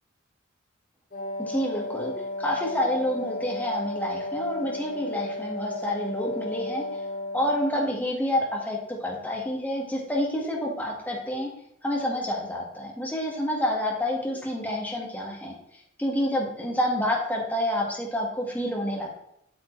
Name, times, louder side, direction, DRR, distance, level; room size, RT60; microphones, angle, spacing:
Wind instrument woodwind instrument, 1.1-7.9, left 2 dB, 45° left, 2.9 m, -34 dB
voice 1, 1.4-2.1 2.4-6.8 7.3-11.5 11.8-15.5 16.0-19.1, left 1 dB, 10° left, -2 dB, 1.7 m, -28 dB
8.4 x 7.5 x 3.2 m, 0.80 s
head